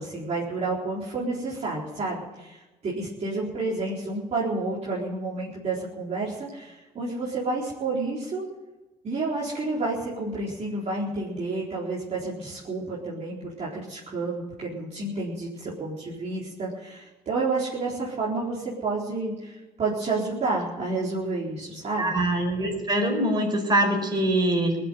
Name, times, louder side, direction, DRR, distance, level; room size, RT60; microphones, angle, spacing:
voice 1, 0.0-8.4 9.0-22.2, right 3 dB, 40° right, -5 dB, 4.2 m, -30 dB
voice 2, 22.0-24.8, right 1 dB, 25° right, 1 dB, 5.4 m, -23 dB
19.5 x 7.9 x 9.3 m, 1.1 s
cardioid pair, 110°, 17 cm